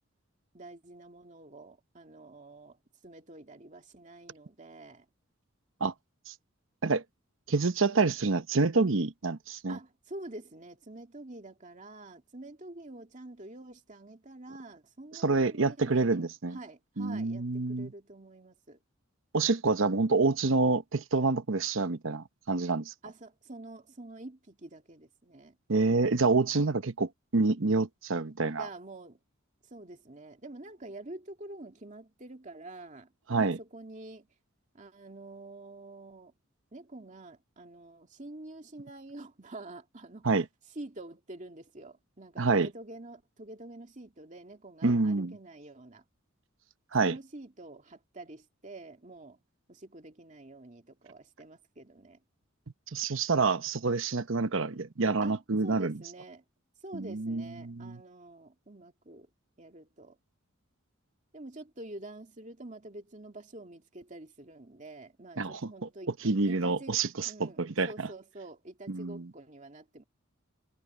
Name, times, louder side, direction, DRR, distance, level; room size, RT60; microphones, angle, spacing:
voice 1, 0.5-2.8 3.0-5.1 9.7-18.8 23.0-25.6 28.5-29.2 29.7-34.3 34.7-36.3 36.7-40.3 40.8-46.0 47.0-49.4 49.7-52.2 55.2-56.4 56.8-59.3 59.6-60.2 61.3-70.0, right 2 dB, 35° right, 2.4 m, -47 dB
voice 2, 7.5-9.8 15.1-16.6 17.0-17.9 19.3-22.9 25.7-28.7 33.3-33.6 40.2-40.4 42.4-42.7 44.8-45.4 46.9-47.2 52.9-55.9 56.9-58.0 65.4-65.9 66.2-67.9 68.9-69.3, right 3 dB, 65° right, 0.9 m, -27 dB
head